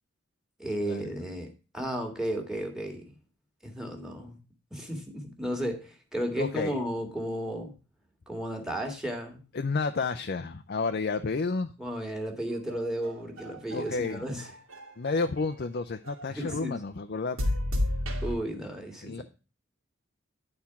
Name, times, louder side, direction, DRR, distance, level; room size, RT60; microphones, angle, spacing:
voice 1, 0.6-3.2 3.6-4.4 4.7-7.7 8.3-9.4 11.8-14.5 16.3-16.8 18.2-19.2, equal, 5° right, 4 dB, 1.8 m, -34 dB
voice 2, 6.4-6.8 9.5-11.7 13.7-14.2 15.0-17.6 19.0-19.2, left 4 dB, 50° left, 8 dB, 0.5 m, -31 dB
sound 1, 12.5-15.5 16.0-16.6 17.4-18.3, left 1 dB, 85° right, 2.4 m, -33 dB
10.5 x 4.4 x 5.7 m, 0.33 s
head